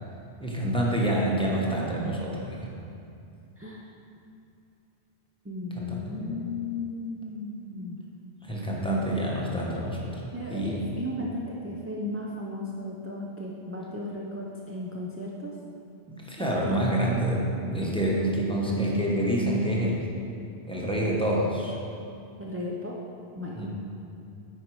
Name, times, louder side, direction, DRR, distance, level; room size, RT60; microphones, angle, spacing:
voice 1, 0.4-2.7 5.7-6.4 8.4-10.9 16.1-20.1 20.6-21.8 23.5-23.7, right 1 dB, 5° left, -4 dB, 1.0 m, -27 dB
voice 2, 5.4-8.0 10.3-15.6 22.4-23.0 23.4-23.7, left 2 dB, 20° right, -4 dB, 0.4 m, -35 dB
9.1 x 4.7 x 4.8 m, 2.6 s
omnidirectional pair, 1.1 m